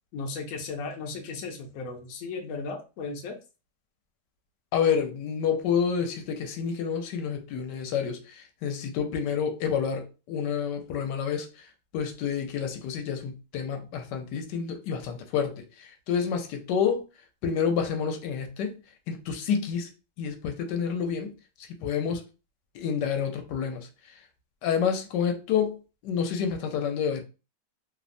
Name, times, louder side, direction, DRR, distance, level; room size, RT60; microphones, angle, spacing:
voice 1, 0.1-3.4, left 4 dB, 65° left, 0.9 m, -36 dB
voice 2, 4.7-17.0 17.4-18.8 19.1-19.9 20.2-21.3 21.6-22.2 22.7-23.9 24.6-27.2, left 7 dB, 85° left, 1.2 m, -29 dB
3.0 x 2.0 x 2.5 m
omnidirectional pair, 1.8 m